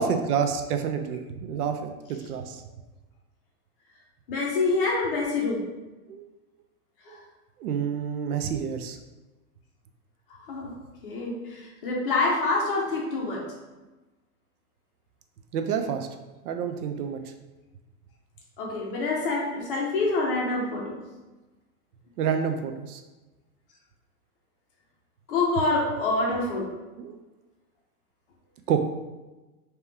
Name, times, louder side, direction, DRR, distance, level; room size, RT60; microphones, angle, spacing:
voice 1, 0.0-1.9 2.3-2.6 6.1-6.2 7.1-7.2 7.6-9.0 15.5-16.1 16.4-17.3 22.2-23.0 27.0-27.2 28.7-28.9, right 7 dB, 70° right, 6 dB, 0.6 m, -28 dB
voice 2, 4.3-5.6 7.0-7.2 10.5-10.7 11.0-13.5 18.6-21.0 25.3-26.7, left 3 dB, 35° left, -3 dB, 0.8 m, -26 dB
3.5 x 2.9 x 3.4 m, 1.1 s
supercardioid pair, 170°, 47 cm